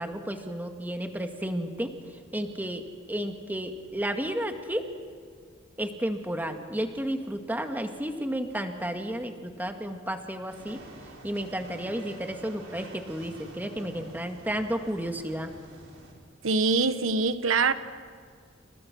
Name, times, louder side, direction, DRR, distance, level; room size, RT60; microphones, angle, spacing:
voice 1, 0.0-1.9 2.3-2.8 3.1-4.8 5.8-10.8 11.2-15.5, right 1 dB, 10° right, 2.0 m, -32 dB
sound 1, 10.5-16.1, right 2 dB, 70° right, 6.2 m, -48 dB
voice 2, 16.4-17.7, right 4 dB, 90° right, 1.2 m, -24 dB
29.5 x 29.5 x 6.2 m
head